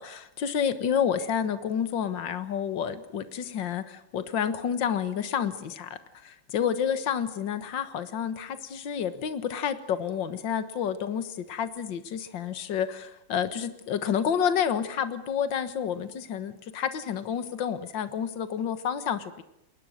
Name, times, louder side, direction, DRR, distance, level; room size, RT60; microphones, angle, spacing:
voice 1, 0.0-19.4, left 8 dB, 65° left, 11 dB, 2.1 m, -29 dB
29.0 x 22.0 x 6.6 m, 0.81 s
omnidirectional pair, 2.2 m